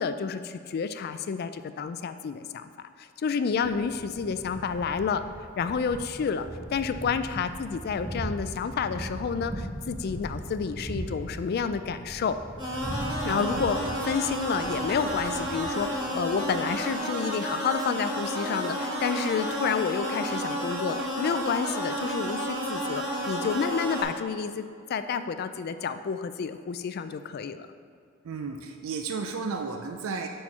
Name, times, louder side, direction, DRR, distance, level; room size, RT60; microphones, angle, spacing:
voice 1, 0.0-2.7 3.2-5.2 5.6-12.4 13.2-24.6 24.9-27.7, left 6 dB, 50° left, 11 dB, 0.3 m, -30 dB
Thunder, 3.6-16.9, right 1 dB, 5° right, 0.6 m, -39 dB
sound 1, 12.6-24.0, equal, 20° right, 1.7 m, -31 dB
voice 2, 13.3-13.7 28.2-30.3, right 4 dB, 85° right, 4 dB, 0.4 m, -33 dB
6.4 x 4.4 x 5.5 m, 2.2 s
head